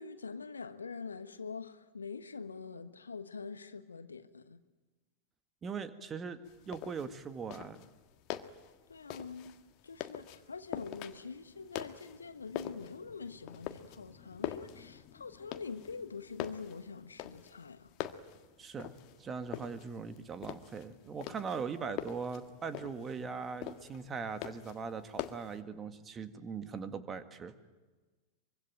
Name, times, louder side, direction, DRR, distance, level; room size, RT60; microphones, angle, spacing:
voice 1, 0.0-4.6 8.9-9.5 9.8-17.9, left 5 dB, 75° left, 1.4 m, -45 dB
voice 2, 5.6-6.4 6.7-7.8 18.6-18.9 19.2-27.5, right 5 dB, 20° right, 1.9 m, -40 dB
sound 1, 6.4-25.6, left 13 dB, 40° left, 1.6 m, -45 dB
24.5 x 24.5 x 9.3 m
figure-of-eight pair, 90°, 0 cm